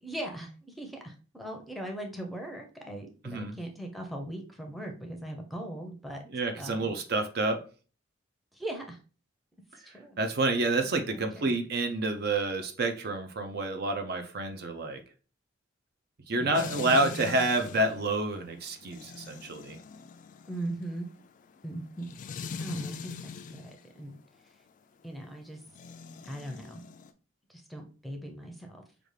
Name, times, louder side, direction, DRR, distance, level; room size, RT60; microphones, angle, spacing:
voice 1, 0.0-6.2 6.5-6.9 8.5-9.0 9.8-10.2 11.1-11.5 16.4-17.1 20.5-21.1 21.6-22.1 22.6-24.2 25.0-25.6 26.2-26.8 27.5-28.8, right 1 dB, ahead, 2 dB, 0.6 m, -39 dB
voice 2, 3.2-3.6 6.3-7.6 10.2-15.0 16.3-19.8, right 2 dB, 55° right, 6 dB, 0.5 m, -29 dB
sound 1, 16.5-23.8 25.7-27.1, left 5 dB, 40° left, 0.3 m, -42 dB
5.0 x 2.4 x 3.2 m, 0.37 s
head